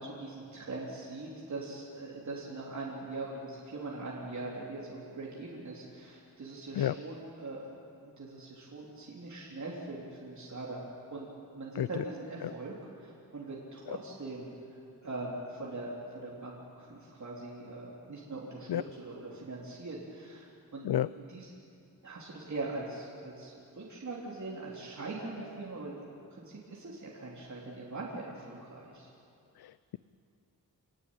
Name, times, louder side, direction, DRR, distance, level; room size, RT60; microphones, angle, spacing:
voice 1, 0.0-7.7 8.0-10.8 11.1-21.5 22.0-29.1, right 2 dB, 50° right, -5 dB, 3.6 m, -42 dB
voice 2, 29.6-30.0, left 11 dB, 75° left, 16 dB, 0.5 m, -31 dB
27.5 x 19.5 x 9.0 m, 2.5 s
wide cardioid pair, 170°, 38 cm